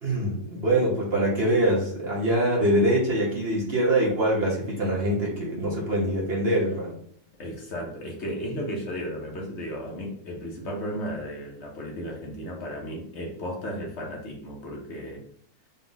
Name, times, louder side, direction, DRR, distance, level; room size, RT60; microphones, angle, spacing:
voice 1, 0.0-7.0, right 1 dB, 45° right, -3 dB, 1.0 m, -24 dB
voice 2, 7.4-15.2, equal, 55° left, 0 dB, 1.0 m, -34 dB
3.9 x 2.3 x 3.9 m, 0.62 s
omnidirectional pair, 1.6 m